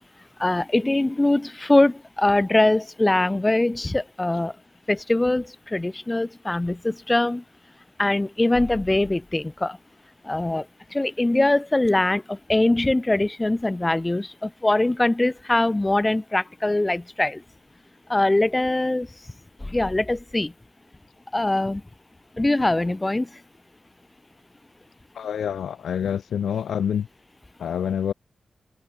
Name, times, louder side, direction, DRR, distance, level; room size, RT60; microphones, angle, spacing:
voice 1, 0.4-4.5 4.9-7.4 8.0-9.8 10.2-10.7 10.9-17.4 18.1-19.1 19.6-20.5 21.3-21.8 22.4-23.4, left 2 dB, 25° left, 1.5 m, -22 dB
voice 2, 25.2-27.1 27.6-28.1, left 8 dB, 85° left, 0.9 m, -26 dB
cardioid pair, 45°, 0 cm